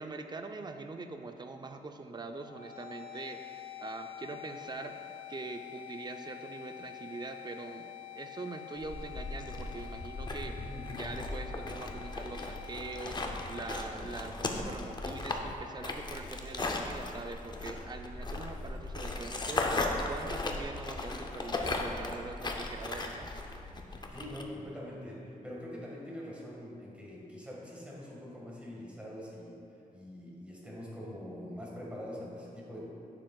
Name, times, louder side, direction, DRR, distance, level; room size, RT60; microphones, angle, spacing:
voice 1, 0.0-5.0 5.3-23.3, right 3 dB, 30° right, 6 dB, 0.4 m, -43 dB
sound 1, 2.4-16.4, left 14 dB, 70° left, 1.0 m, -48 dB
sound 2, 8.8-24.4, left 2 dB, 30° left, 0.5 m, -37 dB
voice 2, 10.6-11.1 11.8-11.9 13.9-14.1 14.5-14.6 24.1-32.9, equal, 10° right, -4 dB, 1.7 m, -44 dB
9.6 x 6.7 x 2.3 m, 2.7 s
wide cardioid pair, 110°, 15 cm